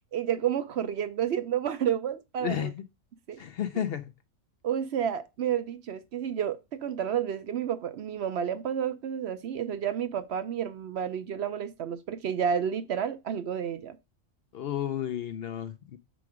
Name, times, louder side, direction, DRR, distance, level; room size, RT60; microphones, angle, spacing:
voice 1, 0.1-2.7 3.3-3.4 4.6-14.0, right 9 dB, 65° right, 0.8 m, -30 dB
voice 2, 2.4-2.8 3.4-4.1 14.5-16.0, left 10 dB, 65° left, 0.6 m, -32 dB
6.1 x 4.6 x 4.9 m
omnidirectional pair, 1.3 m